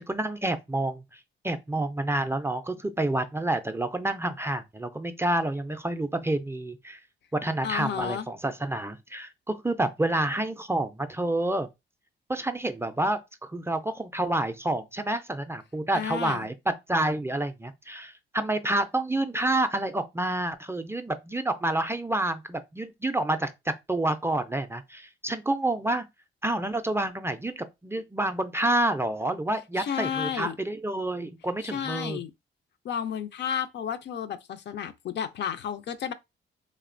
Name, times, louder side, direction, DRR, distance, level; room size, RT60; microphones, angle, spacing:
voice 1, 0.0-7.0 7.3-11.7 12.3-16.5 16.9-26.1 26.4-32.2, right 1 dB, 10° right, 0.3 m, -28 dB
voice 2, 7.6-8.3 15.9-16.5 29.8-30.6 31.6-32.3 32.8-36.1, left 8 dB, 55° left, 0.4 m, -32 dB
2.9 x 2.0 x 2.5 m
cardioid pair, 75°, 21 cm